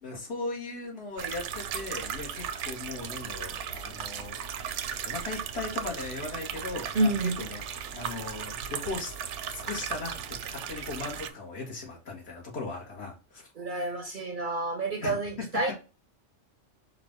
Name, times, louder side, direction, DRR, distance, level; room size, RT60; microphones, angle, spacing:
voice 1, 0.0-7.6 7.9-9.1 9.5-10.2 10.5-13.5 15.0-15.5, left 3 dB, 60° left, -2 dB, 1.7 m, -38 dB
sound 1, 1.2-11.3, right 8 dB, 80° right, 0.9 m, -36 dB
voice 2, 6.9-7.5 13.6-15.7, right 2 dB, 55° right, 6 dB, 0.6 m, -29 dB
5.1 x 2.4 x 4.4 m, 0.32 s
omnidirectional pair, 1.2 m